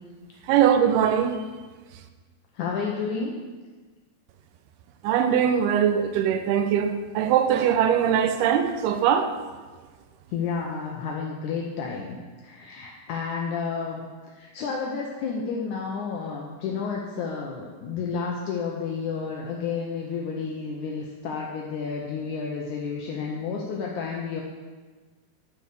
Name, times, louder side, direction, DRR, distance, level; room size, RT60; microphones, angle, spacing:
voice 1, 0.5-1.4 5.0-9.3, right 9 dB, 85° right, 2.5 m, -21 dB
voice 2, 2.5-3.4 10.3-12.2 12.4-14.0 14.3-24.4, left 5 dB, 85° left, 1.7 m, -31 dB
11.5 x 4.7 x 6.7 m
omnidirectional pair, 4.7 m